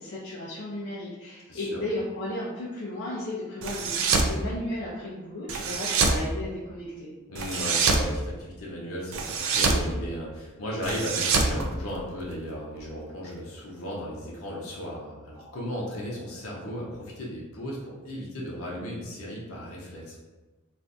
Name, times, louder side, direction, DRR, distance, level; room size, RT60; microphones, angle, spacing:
voice 1, 0.0-7.1, left 1 dB, 60° left, -7 dB, 0.6 m, -34 dB
voice 2, 1.5-1.8 7.3-20.2, equal, 90° left, -4 dB, 0.7 m, -35 dB
sound 1, 3.6-4.3 5.5-6.2 7.4-8.1 9.1-9.9 10.8-12.3, right 4 dB, 70° right, 0.4 m, -25 dB
2.6 x 2.5 x 3.4 m, 1.2 s
head